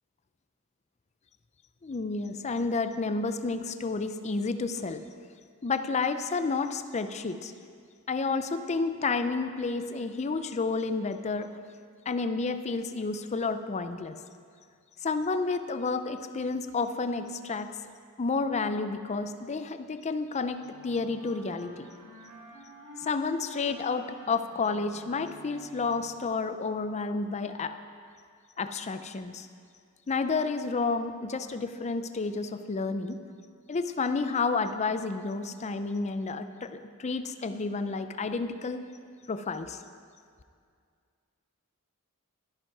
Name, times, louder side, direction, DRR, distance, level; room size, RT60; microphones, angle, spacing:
voice 1, 1.8-5.0 5.6-7.5 8.1-11.5 12.1-14.2 15.0-17.7 18.2-21.9 23.0-27.7 28.6-29.5 30.1-33.2 33.7-38.8 39.3-39.8, left 4 dB, 30° left, 9 dB, 0.5 m, -30 dB
Wind instrument woodwind instrument, 20.6-26.3, equal, 90° right, 2.8 m, -50 dB
12.5 x 11.0 x 4.7 m, 2.2 s
head